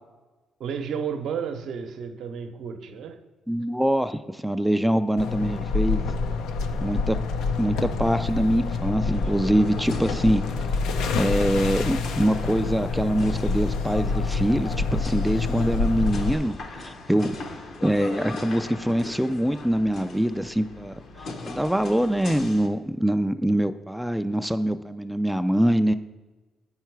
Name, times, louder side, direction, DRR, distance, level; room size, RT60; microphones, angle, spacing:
voice 1, 0.6-3.2 17.3-17.6, right 6 dB, 75° right, 7 dB, 0.7 m, -32 dB
voice 2, 3.5-6.0 6.8-7.2 7.6-10.4 11.2-17.3 17.8-25.9, equal, ahead, 10 dB, 0.3 m, -24 dB
sound 1, 5.2-16.3, left 4 dB, 90° left, 0.6 m, -27 dB
sound 2, 9.1-22.7, left 3 dB, 65° left, 0.9 m, -40 dB
8.2 x 5.7 x 4.6 m, 1.2 s
cardioid pair, 90°, 0 cm